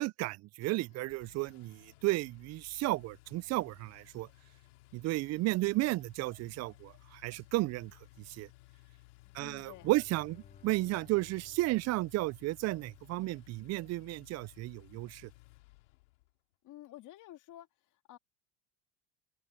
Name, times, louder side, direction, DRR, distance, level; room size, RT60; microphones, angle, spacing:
voice 1, 0.0-4.3 4.9-7.9 8.3-8.5 9.3-15.3, right 19 dB, 45° right, 0.5 m, -33 dB
Engine, 0.6-16.3, left 21 dB, 85° left, 3.1 m, -59 dB
Bowed string instrument, 9.2-13.3, left 6 dB, 20° left, 1.3 m, -60 dB
voice 2, 9.4-9.9 16.6-18.2, left 14 dB, 55° left, 2.1 m, -51 dB
open air
supercardioid pair, 90°, 36 cm